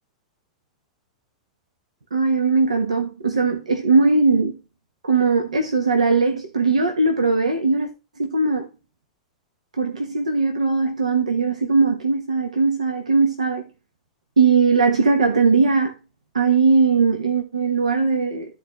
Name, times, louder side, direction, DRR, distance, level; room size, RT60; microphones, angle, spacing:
voice 1, 2.1-4.6 5.0-7.9 8.2-8.7 9.8-13.6 14.4-15.9 16.3-18.5, right 4 dB, 85° right, 1.3 m, -19 dB
13.0 x 4.6 x 3.3 m
hypercardioid pair, 100°, 4 cm